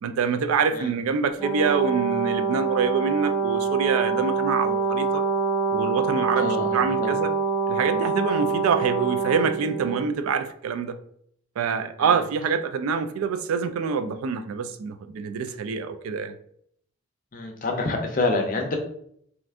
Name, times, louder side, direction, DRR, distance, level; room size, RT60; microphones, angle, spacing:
voice 1, 0.0-5.2 5.7-7.3 7.7-11.0 11.6-16.3, right 6 dB, 85° right, 0.3 m, -26 dB
Brass instrument, 1.4-10.1, right 5 dB, 5° right, 1.1 m, -25 dB
voice 2, 6.4-7.1 12.0-12.2 17.3-18.8, left 2 dB, 40° left, 0.5 m, -27 dB
2.5 x 2.5 x 3.3 m
head